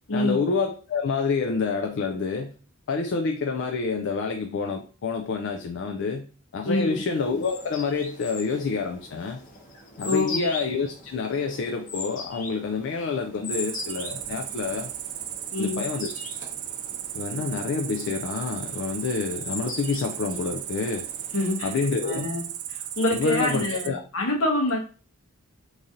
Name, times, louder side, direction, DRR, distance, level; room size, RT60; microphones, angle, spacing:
voice 1, 0.1-2.5 2.9-9.4 10.0-14.9 15.6-16.1 17.1-21.1 21.6-22.3 23.1-24.0, left 4 dB, 55° left, 4 dB, 0.4 m, -28 dB
sound 1, 6.9-21.8, left 3 dB, 40° left, 1.0 m, -41 dB
voice 2, 10.1-10.5 15.5-15.8 21.3-21.7 22.0-22.5 23.0-24.8, left 2 dB, 75° left, -1 dB, 1.2 m, -25 dB
Cricket, 13.5-23.9, right 11 dB, 80° right, 0.4 m, -35 dB
3.1 x 2.6 x 3.7 m, 0.39 s
head